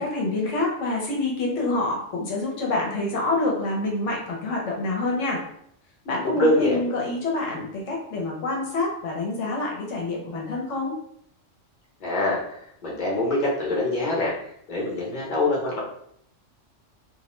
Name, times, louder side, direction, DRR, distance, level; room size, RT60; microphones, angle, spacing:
voice 1, 0.0-5.4 6.0-10.9, left 2 dB, 75° left, -2 dB, 0.9 m, -27 dB
voice 2, 6.2-6.8 12.0-14.3 14.7-15.8, left 1 dB, 45° left, -4 dB, 0.8 m, -24 dB
2.4 x 2.0 x 2.9 m, 0.70 s
omnidirectional pair, 1.3 m